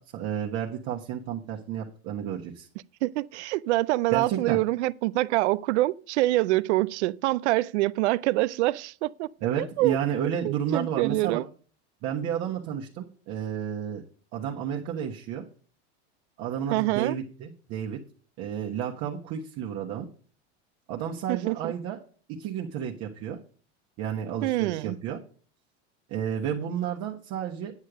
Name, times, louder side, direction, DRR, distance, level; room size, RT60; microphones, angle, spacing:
voice 1, 0.1-2.7 4.1-4.6 9.4-11.4 12.0-14.0 14.3-15.5 16.4-18.0 18.4-20.1 20.9-22.0 22.3-23.4 24.0-25.2 26.1-27.7, right 9 dB, 50° right, 1.4 m, -31 dB
voice 2, 3.0-9.3 9.6-10.0 10.4-11.5 16.7-17.2 21.3-21.7 24.4-25.0, right 18 dB, 85° right, 0.5 m, -25 dB
9.7 x 6.5 x 5.0 m
supercardioid pair, 130°, 33 cm